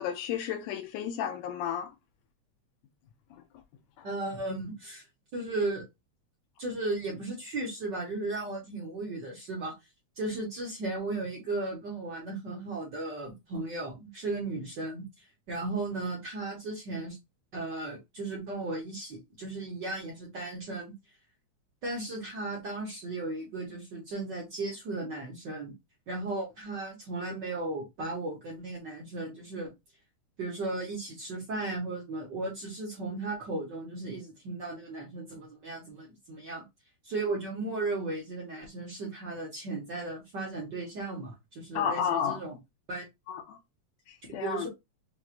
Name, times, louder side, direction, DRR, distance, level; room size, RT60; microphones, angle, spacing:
voice 1, 0.0-1.9 41.8-42.4 43.3-43.4 44.3-44.7, left 8 dB, 75° left, 1.7 m, -31 dB
voice 2, 4.0-5.0 5.3-5.8 6.6-9.7 10.2-17.2 17.5-20.9 21.8-25.7 26.1-29.7 30.4-36.6 37.0-42.6 42.9-43.0 44.4-44.7, right 2 dB, 50° right, 1.4 m, -35 dB
5.9 x 2.6 x 2.5 m
omnidirectional pair, 3.4 m